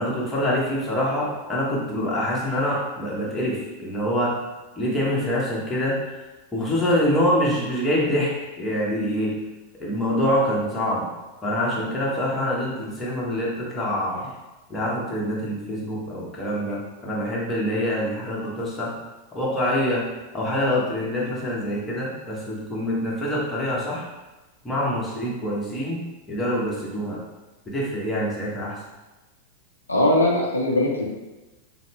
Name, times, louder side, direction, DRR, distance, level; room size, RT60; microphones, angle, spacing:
voice 1, 0.0-4.5 4.8-6.1 6.5-9.4 9.8-11.1 11.4-14.3 14.7-19.0 19.3-20.1 20.3-24.1 24.6-26.0 26.3-27.2 27.7-28.8, equal, 15° left, -5 dB, 1.1 m, -25 dB
voice 2, 29.9-31.0, left 1 dB, 80° left, -2 dB, 0.6 m, -20 dB
5.4 x 2.1 x 3.3 m, 1.1 s
figure-of-eight pair, 90°, 0 cm